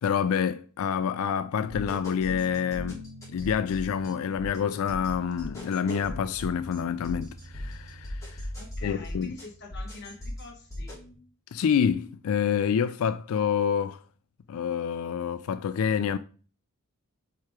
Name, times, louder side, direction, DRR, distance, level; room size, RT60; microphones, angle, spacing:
voice 1, 0.0-3.0 3.3-8.5 8.8-9.3 11.5-14.0 14.5-16.2, left 7 dB, 65° left, 0.3 m, -27 dB
sound 1, 1.6-11.1, left 1 dB, 15° left, 2.6 m, -39 dB
voice 2, 8.6-10.9, left 3 dB, 50° left, 1.0 m, -45 dB
4.8 x 4.7 x 4.4 m
head